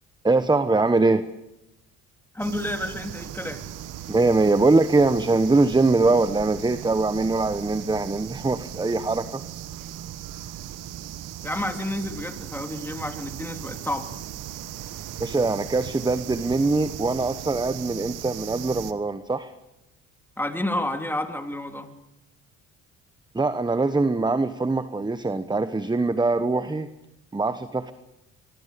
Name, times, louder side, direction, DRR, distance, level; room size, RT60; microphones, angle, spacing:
voice 1, 0.2-1.2 4.1-9.4 15.2-19.5 23.3-26.9 27.3-27.9, right 3 dB, 15° right, 12 dB, 1.1 m, -22 dB
voice 2, 2.3-3.6 11.4-14.1 20.4-21.9, left 1 dB, 5° left, 5 dB, 3.4 m, -30 dB
sound 1, 2.4-18.9, right 12 dB, 70° right, 1.5 m, -38 dB
24.5 x 23.0 x 6.9 m, 0.91 s
supercardioid pair, 70°, 32 cm